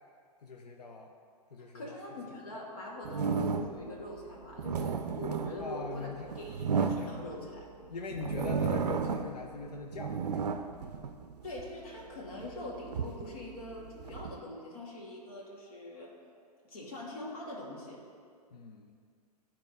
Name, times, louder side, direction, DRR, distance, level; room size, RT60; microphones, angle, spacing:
voice 1, 0.4-1.1 1.5-2.0 5.6-6.3 6.7-7.6 7.9-10.6 18.5-19.0, left 4 dB, 80° left, 2 dB, 0.6 m, -42 dB
voice 2, 1.7-7.7 11.4-16.1 16.7-18.0, left 1 dB, 65° left, -2 dB, 1.7 m, -43 dB
sound 1, 3.0-3.9 4.4-7.6 8.1-9.4 9.8-11.7 12.3-14.4, right 6 dB, 80° right, 0.5 m, -33 dB
11.5 x 4.4 x 3.9 m, 2.2 s
hypercardioid pair, 110°, 20 cm